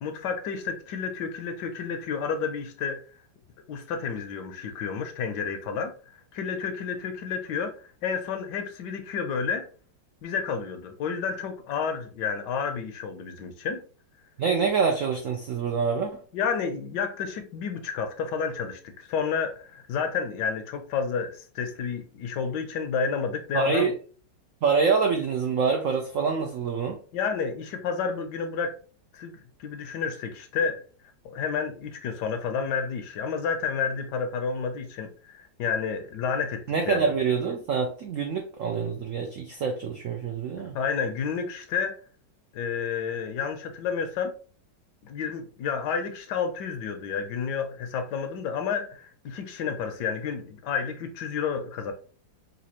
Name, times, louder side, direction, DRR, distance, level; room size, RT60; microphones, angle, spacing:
voice 1, 0.0-3.0 3.7-5.9 6.3-9.7 10.2-13.8 16.3-23.9 27.1-28.8 29.1-30.8 31.2-37.1 40.7-42.0 42.5-44.3 45.0-51.9, left 6 dB, 75° left, 1.2 m, -30 dB
voice 2, 14.4-16.2 23.5-23.9 24.6-27.0 36.7-40.7, right 5 dB, 80° right, 0.7 m, -26 dB
4.0 x 2.6 x 2.9 m
omnidirectional pair, 2.0 m